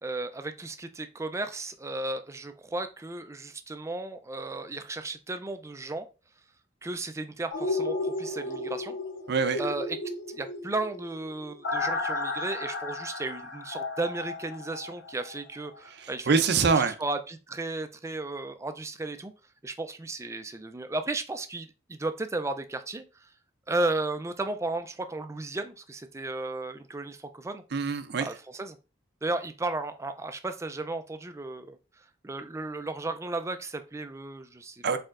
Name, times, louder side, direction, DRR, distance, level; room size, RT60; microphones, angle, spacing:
voice 1, 0.0-6.1 6.8-9.0 9.6-10.0 10.3-19.3 19.6-23.0 23.7-27.6 28.2-28.8 29.2-31.8 32.2-34.8, right 2 dB, 15° right, 0.4 m, -34 dB
sound 1, 7.5-15.4 15.7-15.8, left 2 dB, 85° left, 0.8 m, -34 dB
voice 2, 9.3-9.6 16.0-17.0 27.7-28.3 34.8-35.0, right 5 dB, 65° right, 0.5 m, -24 dB
4.5 x 4.3 x 2.5 m
head